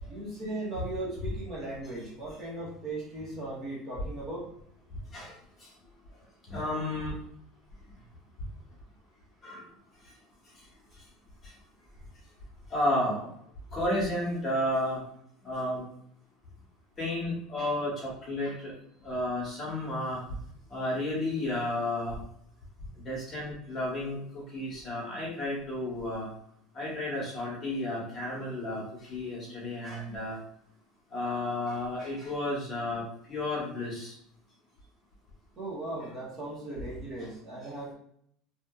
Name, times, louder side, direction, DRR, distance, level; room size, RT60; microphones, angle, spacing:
voice 1, 0.1-4.5 35.6-37.9, right 2 dB, 25° right, -5 dB, 1.0 m, -37 dB
voice 2, 6.5-7.1 9.4-9.6 12.7-13.3 13.7-15.0 15.4-15.8 17.0-18.7 19.0-20.2 20.7-22.2 23.0-24.2 24.5-26.3 26.7-28.8 29.1-30.4 31.1-33.0 33.3-34.1 37.2-37.3, left 1 dB, 20° left, -5 dB, 1.2 m, -32 dB
2.8 x 2.5 x 2.3 m, 0.70 s
cardioid pair, 160°, 0 cm